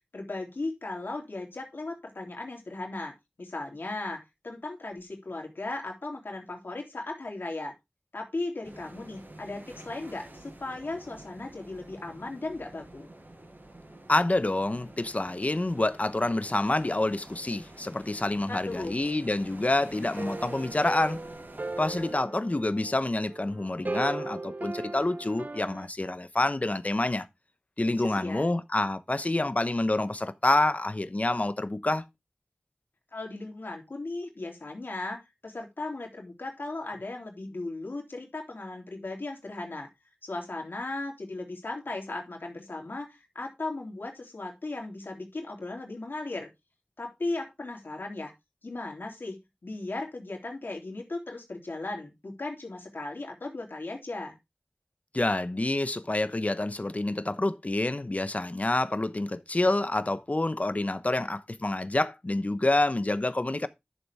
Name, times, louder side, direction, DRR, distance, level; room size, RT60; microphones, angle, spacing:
voice 1, 0.1-7.7 8.1-13.1 18.5-18.9 28.0-28.5 33.1-39.9 40.2-46.5 47.0-48.3 48.6-54.4, left 2 dB, 90° left, 3.2 m, -37 dB
sound 1, 8.6-22.1, right 1 dB, 75° right, 5.5 m, -48 dB
voice 2, 14.1-21.2 21.8-27.3 27.8-32.0 55.1-63.7, left 2 dB, 45° left, 0.9 m, -27 dB
sound 2, 20.2-25.9, right 2 dB, 55° right, 0.6 m, -38 dB
11.5 x 7.2 x 3.5 m
wide cardioid pair, 55°, 4 cm